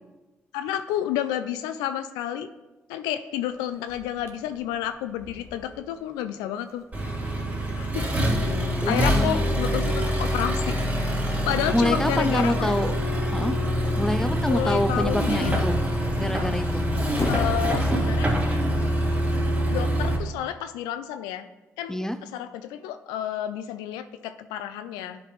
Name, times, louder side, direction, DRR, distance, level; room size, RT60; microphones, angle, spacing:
voice 1, 0.5-2.5 2.9-6.8 7.8-8.1 8.9-11.1 11.5-12.8 14.4-15.6 17.3-18.3 19.7-21.5 21.8-22.0 22.3-25.2, left 11 dB, 85° left, 10 dB, 0.4 m, -30 dB
sound 1, 3.5-18.5, left 3 dB, 40° left, 1.4 m, -41 dB
Accelerating revving vroom, 6.9-20.2, equal, 25° right, 2.4 m, -25 dB
voice 2, 8.8-9.4 11.7-12.9 13.3-13.7 14.0-15.8 16.2-16.9 21.9-22.2, left 1 dB, 5° left, 11 dB, 0.6 m, -26 dB
11.0 x 5.1 x 3.2 m, 1.1 s
hypercardioid pair, 45°, 7 cm